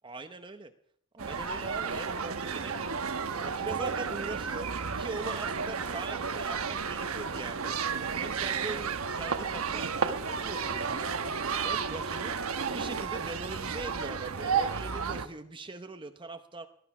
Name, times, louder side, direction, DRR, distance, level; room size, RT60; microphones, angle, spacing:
voice 1, 0.0-0.7 1.1-2.9 3.4-7.8 8.2-11.1 11.6-12.4 12.7-16.7, right 3 dB, 25° right, 7 dB, 0.8 m, -41 dB
sound 1, 1.2-15.3, right 6 dB, 85° right, 1.0 m, -32 dB
19.5 x 12.0 x 5.9 m, 0.68 s
head